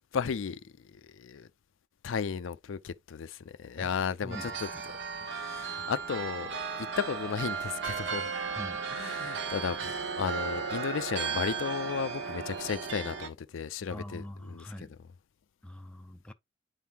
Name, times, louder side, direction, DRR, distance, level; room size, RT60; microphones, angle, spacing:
voice 1, 0.1-1.5 2.0-4.7 5.2-8.3 8.9-14.7, left 6 dB, 85° left, 0.4 m, -34 dB
voice 2, 4.2-4.6 8.5-8.8 13.9-15.0 15.6-16.3, left 1 dB, 5° left, 0.5 m, -43 dB
sound 1, 4.3-13.3, right 5 dB, 60° right, 0.9 m, -35 dB
9.1 x 3.7 x 2.8 m
head